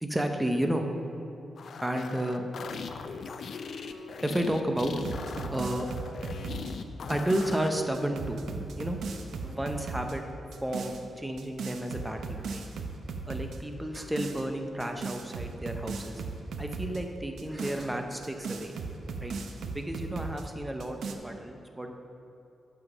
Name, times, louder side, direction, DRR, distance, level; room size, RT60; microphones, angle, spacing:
voice 1, 0.0-0.9 1.8-2.4 4.2-4.9 5.5-5.9 7.1-9.0 9.4-10.2 10.6-12.6 13.3-16.2 16.6-18.8 19.2-19.3 19.7-21.0 21.2-21.9, right 1 dB, 5° right, 4 dB, 0.6 m, -32 dB
sound 1, 1.6-7.8, left 5 dB, 55° left, 0.4 m, -40 dB
sound 2, 5.0-7.6 7.9-10.2 10.5-11.0 11.4-13.6 13.9-14.4 14.8-17.0 17.4-20.4 20.8-21.1, right 4 dB, 80° right, 0.6 m, -37 dB
7.9 x 5.7 x 6.0 m, 2.8 s
wide cardioid pair, 155°, 0 cm